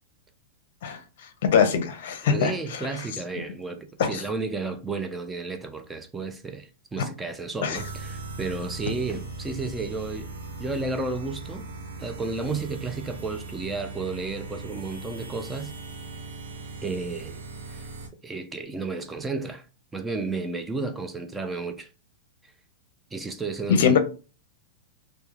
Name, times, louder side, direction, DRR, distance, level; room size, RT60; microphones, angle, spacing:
voice 1, 1.5-2.9 4.0-4.2 7.6-7.8 23.8-24.0, left 7 dB, 65° left, 0.6 m, -23 dB
voice 2, 2.2-10.3 10.6-11.7 12.0-15.7 16.8-17.4 17.7-17.8 18.2-19.6 19.9-21.9 23.1-24.0, right 3 dB, 10° right, 0.3 m, -32 dB
sound 1, 7.7-18.1, right 3 dB, 90° right, 0.9 m, -39 dB
2.2 x 2.1 x 3.0 m
hypercardioid pair, 140°, 0 cm